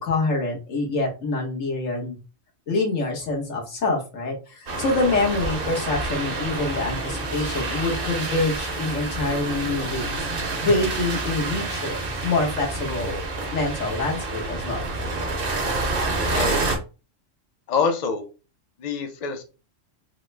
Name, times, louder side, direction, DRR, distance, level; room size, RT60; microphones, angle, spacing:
voice 1, 0.0-2.2 2.7-10.3 10.6-13.2 13.5-14.8, left 2 dB, 80° left, 0 dB, 1.4 m, -26 dB
sound 1, 4.7-16.8, right 2 dB, 50° right, 0.9 m, -28 dB
voice 2, 16.3-16.7 17.7-18.2 18.8-19.4, left 5 dB, 50° left, 5 dB, 0.5 m, -25 dB
3.7 x 2.0 x 3.2 m, 0.31 s
omnidirectional pair, 1.3 m